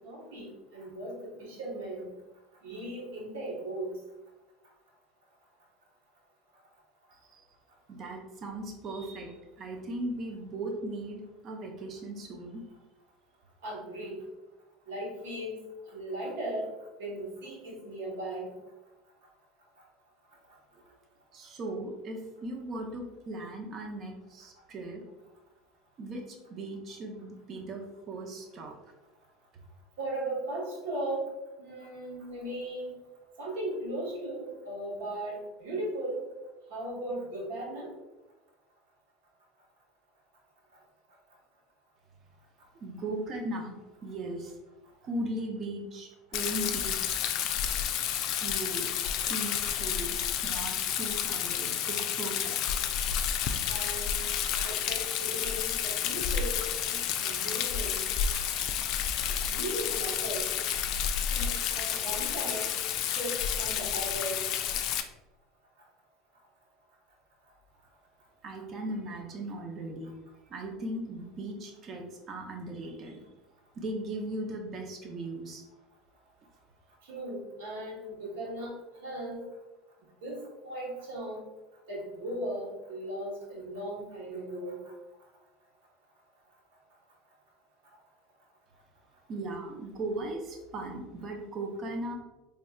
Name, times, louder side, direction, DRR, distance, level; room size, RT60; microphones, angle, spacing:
voice 1, 0.0-2.1 2.6-3.9 13.6-14.2 14.9-15.6 15.9-16.7 17.0-18.5 30.0-31.3 31.6-32.9 33.4-36.2 36.7-37.9 53.7-54.2 54.6-56.6 56.9-58.1 59.5-60.5 61.3-62.7 63.1-64.4 77.0-78.7 79.0-79.5 80.2-81.4 81.9-84.8, right 1 dB, 80° right, -3 dB, 1.2 m, -37 dB
voice 2, 7.9-12.6 20.7-20.8 21.3-25.0 26.0-28.8 42.8-44.5 45.0-47.2 48.2-48.9 49.3-52.5 68.4-70.1 70.5-73.2 73.8-75.6 89.3-92.1, right 1 dB, 45° right, 2 dB, 0.7 m, -38 dB
Rain, 46.3-65.0, left 9 dB, 60° left, 0.3 m, -30 dB
4.2 x 3.2 x 2.4 m, 1.1 s
supercardioid pair, 100°, 0 cm